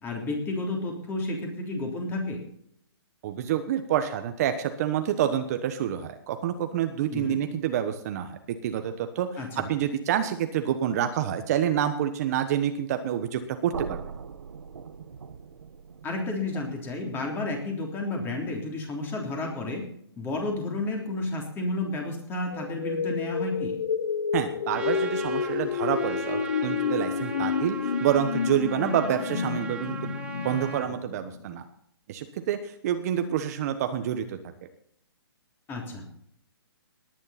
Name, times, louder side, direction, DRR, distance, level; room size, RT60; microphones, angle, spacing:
voice 1, 0.0-2.4 7.1-7.4 9.4-9.7 16.0-19.8 20.2-23.7 35.7-36.0, left 2 dB, 15° left, 1 dB, 3.3 m, -31 dB
voice 2, 3.2-9.3 9.7-14.0 24.3-30.2 30.4-31.6 32.1-34.4, right 10 dB, 40° right, 7 dB, 1.2 m, -28 dB
sound 1, 13.7-19.6, right 6 dB, 80° right, 1.3 m, -42 dB
sound 2, 22.5-31.4, left 6 dB, 75° left, 0.8 m, -30 dB
Trumpet, 24.7-30.9, right 5 dB, 10° right, 1.7 m, -39 dB
19.0 x 9.9 x 4.3 m, 0.70 s
hypercardioid pair, 150°, 13 cm